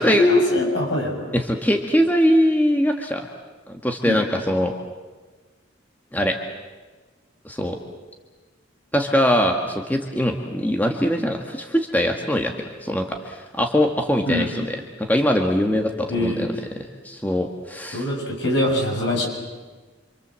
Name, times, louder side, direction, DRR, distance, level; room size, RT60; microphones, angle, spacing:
voice 1, 0.0-1.3 4.0-4.2 14.3-14.5 16.1-16.5 17.9-19.3, left 1 dB, 65° left, 0 dB, 7.0 m, -22 dB
voice 2, 1.3-3.2 3.8-4.7 6.1-6.4 7.4-7.8 8.9-12.5 12.8-16.5 17.0-18.1, equal, 10° left, 2 dB, 1.7 m, -22 dB
27.0 x 26.5 x 7.6 m, 1.3 s
head